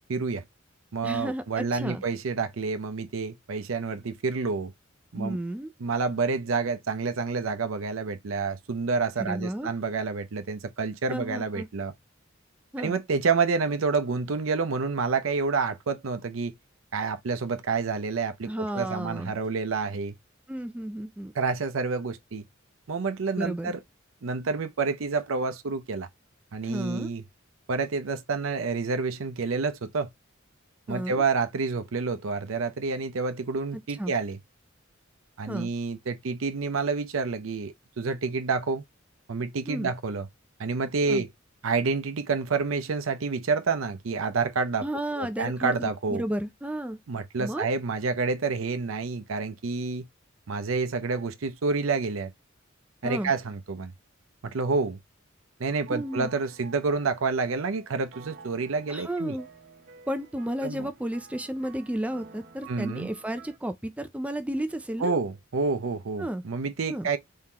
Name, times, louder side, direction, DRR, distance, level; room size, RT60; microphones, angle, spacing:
voice 1, 0.1-0.4 0.9-4.7 5.1-5.4 5.8-11.9 12.8-16.5 16.9-20.1 21.3-22.4 22.9-23.8 24.2-26.1 26.5-27.2 27.7-30.1 30.9-34.4 35.4-38.8 39.3-40.3 40.6-41.3 41.6-44.9 45.2-46.2 47.1-50.1 50.5-52.3 53.0-53.9 54.4-55.0 55.6-59.4 60.6-60.9 62.7-63.1 65.0-67.2, right 4 dB, 80° right, 0.6 m, -28 dB
voice 2, 1.0-2.0 5.1-5.7 9.2-9.7 11.1-11.7 12.7-13.0 18.5-19.3 20.5-21.3 23.4-23.7 26.6-27.1 30.9-31.2 34.0-34.1 35.5-35.7 39.7-39.9 41.1-41.2 44.8-47.0 47.4-47.7 53.0-53.3 55.9-56.3 58.9-59.5 60.1-65.2 66.2-66.4 66.9-67.1, right 1 dB, 5° right, 0.3 m, -32 dB
sound 1, 55.6-63.6, right 5 dB, 45° right, 0.9 m, -51 dB
3.7 x 3.6 x 2.8 m
head